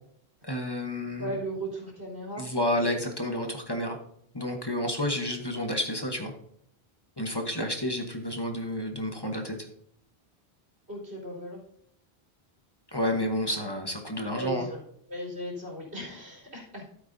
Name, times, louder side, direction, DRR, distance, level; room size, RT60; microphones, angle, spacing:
voice 1, 0.4-1.4 2.4-4.0 4.3-6.3 7.2-9.6 12.9-14.7, left 1 dB, 25° left, 3 dB, 1.1 m, -30 dB
voice 2, 1.2-2.4 10.9-11.6 14.3-14.8 15.1-16.8, equal, 90° right, -2 dB, 4.1 m, -37 dB
13.5 x 8.1 x 2.7 m, 0.69 s
omnidirectional pair, 1.1 m